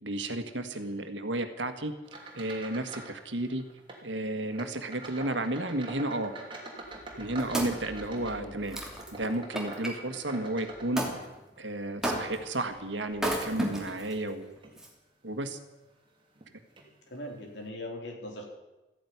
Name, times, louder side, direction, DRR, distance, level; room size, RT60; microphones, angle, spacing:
voice 1, 0.0-1.9 2.4-3.6 4.0-6.3 7.2-8.8 9.1-11.0 11.6-14.5 15.2-15.6, right 1 dB, 90° right, 8 dB, 1.8 m, -33 dB
sound 1, 2.0-3.2 3.5-4.0 4.5-11.6 12.1-13.9 14.6-14.8 15.4-15.5 16.4-16.5 16.8-16.9, right 2 dB, 30° right, 3.1 m, -45 dB
Wood, 7.0-9.9 11.0-11.2 12.0-12.6 13.1-14.1 14.8-14.9, right 1 dB, 5° right, 2.8 m, -33 dB
voice 2, 8.1-8.6 17.1-18.5, left 1 dB, 70° left, 1 dB, 4.2 m, -40 dB
14.5 x 10.5 x 9.6 m, 1.0 s
head